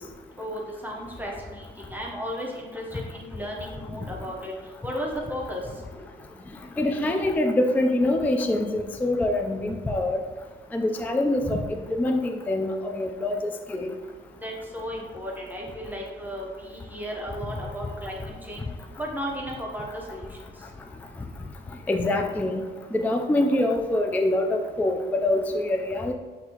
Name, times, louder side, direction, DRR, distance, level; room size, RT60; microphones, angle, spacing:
voice 1, 0.4-4.5 4.8-5.6 14.4-18.7 19.0-20.3, equal, 10° right, -3 dB, 0.9 m, -34 dB
voice 2, 6.8-10.2 10.7-13.9 21.9-22.6 22.9-26.1, left 1 dB, 10° left, 4 dB, 0.3 m, -25 dB
6.0 x 2.7 x 2.8 m, 1.5 s
cardioid pair, 90°, 20 cm